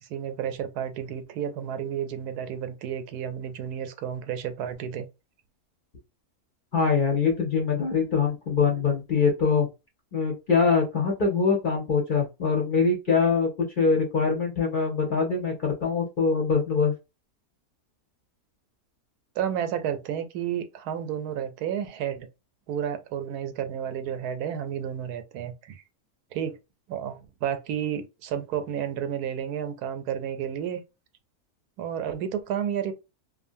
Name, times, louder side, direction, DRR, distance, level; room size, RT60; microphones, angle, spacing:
voice 1, 0.1-5.1 19.4-22.3 22.7-25.8 26.3-26.6 26.9-30.8 31.8-32.9, right 9 dB, 85° right, 1.1 m, -31 dB
voice 2, 6.7-9.7 10.1-13.5 13.8-16.9, left 5 dB, 45° left, 0.7 m, -23 dB
2.6 x 2.4 x 2.6 m
omnidirectional pair, 1.6 m